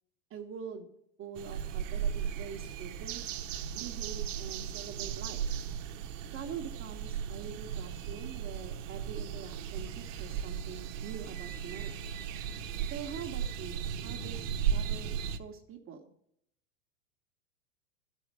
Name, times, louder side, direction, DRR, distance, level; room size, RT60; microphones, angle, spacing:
voice 1, 0.3-0.9 1.2-3.2 3.7-5.4 6.3-11.9 12.9-15.1 15.4-16.1, right 7 dB, 30° right, 2 dB, 1.5 m, -44 dB
sound 1, 1.3-15.4, right 8 dB, 65° right, 1.1 m, -36 dB
12.5 x 5.6 x 9.0 m, 0.72 s
hypercardioid pair, 120°, 40 cm